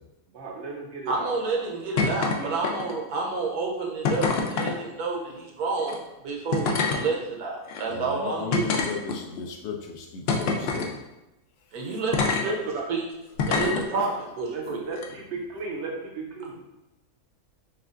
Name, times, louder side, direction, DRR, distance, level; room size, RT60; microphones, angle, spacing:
voice 1, 0.3-1.6 2.1-2.5 12.4-12.8 13.5-13.6 13.9-14.1 14.5-16.6, right 4 dB, 60° right, -1 dB, 0.8 m, -36 dB
voice 2, 1.1-8.8 11.7-13.0 13.5-14.1 14.4-14.8, right 4 dB, 85° right, -1 dB, 1.3 m, -29 dB
sound 1, 2.0-2.4 2.6-3.1 4.0-4.7 5.8-6.0 6.5-7.0 7.7-7.8 8.5-9.4 10.3-10.9 12.1-12.4 13.4-13.8 14.9-15.1, left 4 dB, 70° left, 0.6 m, -25 dB
voice 3, 7.9-10.9, left 5 dB, 85° left, 3 dB, 1.1 m, -36 dB
6.2 x 2.4 x 2.4 m, 0.96 s
omnidirectional pair, 1.5 m